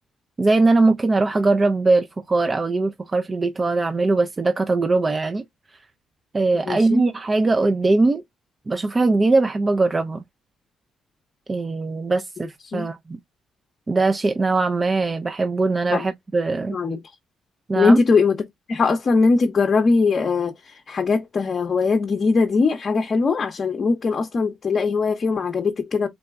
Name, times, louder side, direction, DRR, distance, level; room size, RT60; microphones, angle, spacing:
voice 1, 0.4-5.4 6.3-8.2 8.7-10.2 11.5-13.2 13.9-16.8 17.7-18.0, right 3 dB, 25° right, 0.4 m, -21 dB
voice 2, 6.7-7.0 12.7-12.9 15.9-16.0 16.7-17.0 17.7-18.4 18.7-26.1, left 4 dB, 45° left, 0.7 m, -20 dB
3.9 x 2.1 x 3.5 m
cardioid pair, 90°, 0 cm